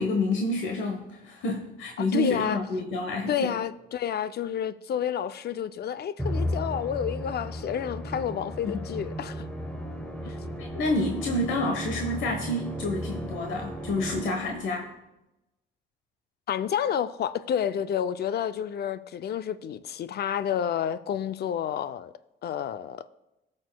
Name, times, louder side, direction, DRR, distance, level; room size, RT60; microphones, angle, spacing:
voice 1, 0.0-3.6 8.6-8.8 10.3-14.9, left 2 dB, 75° left, 1.1 m, -29 dB
voice 2, 2.0-2.6 3.3-9.4 16.5-22.1 22.4-23.0, left 9 dB, 55° left, 0.4 m, -30 dB
Musical instrument, 6.2-14.7, equal, 5° left, 1.0 m, -35 dB
18.0 x 6.4 x 2.2 m
cardioid pair, 90°, 20 cm